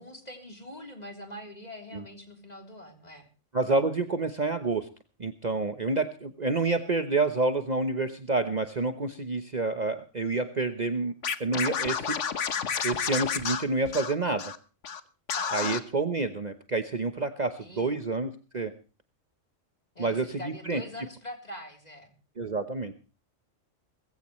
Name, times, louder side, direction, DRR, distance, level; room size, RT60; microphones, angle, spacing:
voice 1, 0.0-3.3 15.3-15.5 17.5-18.0 20.0-22.1, left 1 dB, 30° left, 4 dB, 3.9 m, -43 dB
voice 2, 3.5-4.9 5.2-11.1 11.4-12.2 12.8-14.5 15.5-18.7 20.0-20.8 22.4-23.1, right 3 dB, 35° right, 9 dB, 1.1 m, -28 dB
Scratching (performance technique), 11.2-14.6 14.8-15.0 15.3-15.8, left 7 dB, 65° left, 1.4 m, -30 dB
19.5 x 16.0 x 3.1 m, 0.34 s
omnidirectional pair, 1.3 m